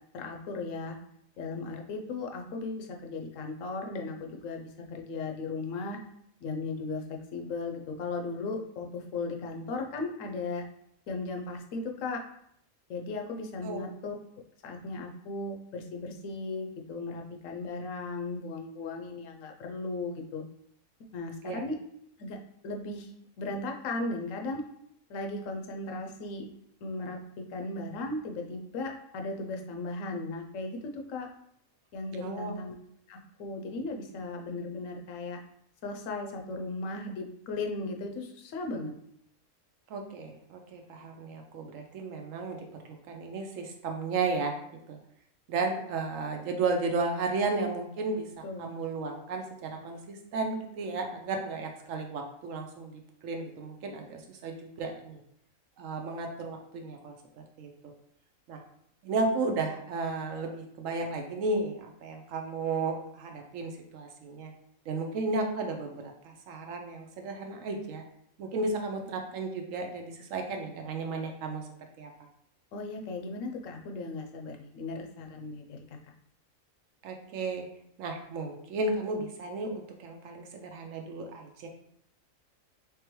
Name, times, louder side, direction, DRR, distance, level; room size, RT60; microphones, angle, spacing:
voice 1, 0.1-0.9 1.4-6.0 6.4-10.6 11.1-12.2 12.9-14.1 14.6-20.4 21.1-21.8 22.2-22.4 22.6-23.1 23.4-24.6 25.1-26.5 26.8-27.2 27.5-31.3 31.9-32.8 33.1-35.4 35.8-38.9 48.4-48.7 72.7-76.0, left 3 dB, 70° left, 3 dB, 1.0 m, -36 dB
voice 2, 32.1-32.5 39.9-44.6 44.9-45.0 45.5-48.3 48.6-55.2 55.8-57.2 57.6-57.9 58.5-58.6 59.0-64.5 64.9-68.0 68.4-71.7 72.0-72.1 77.0-77.7 78.0-81.7, right 3 dB, 70° right, 3 dB, 0.9 m, -34 dB
3.8 x 3.3 x 3.0 m, 0.72 s
omnidirectional pair, 1.4 m